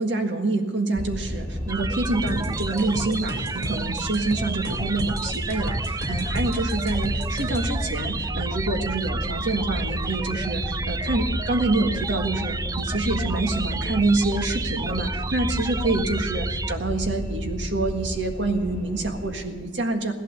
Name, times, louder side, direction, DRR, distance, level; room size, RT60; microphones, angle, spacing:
voice 1, 0.0-20.1, right 2 dB, 75° right, 4 dB, 1.7 m, -26 dB
sound 1, 0.9-19.4, equal, 35° right, 4.9 m, -31 dB
sound 2, 1.7-16.7, right 4 dB, 20° right, 0.3 m, -32 dB
sound 3, 2.3-7.7, equal, 60° right, 3.4 m, -33 dB
16.5 x 12.0 x 6.6 m, 1.5 s
head